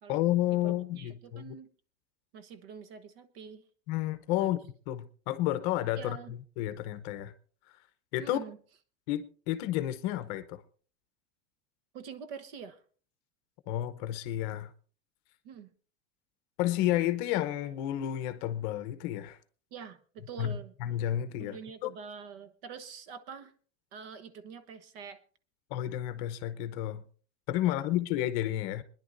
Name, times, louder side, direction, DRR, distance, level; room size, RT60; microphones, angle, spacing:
voice 1, 0.1-1.6 3.9-4.6 4.9-7.3 8.1-8.4 9.1-10.6 13.7-14.7 16.6-19.4 20.4-21.9 25.7-27.0 27.5-28.8, left 13 dB, 40° left, 0.8 m, -31 dB
voice 2, 0.6-1.7 2.3-3.6 4.4-4.5 6.0-6.3 8.2-8.6 11.9-12.8 15.4-15.7 19.7-20.7 21.4-23.5 23.9-25.2 27.6-27.8, right 6 dB, 55° right, 1.2 m, -45 dB
26.5 x 10.5 x 2.6 m
supercardioid pair, 175°, 34 cm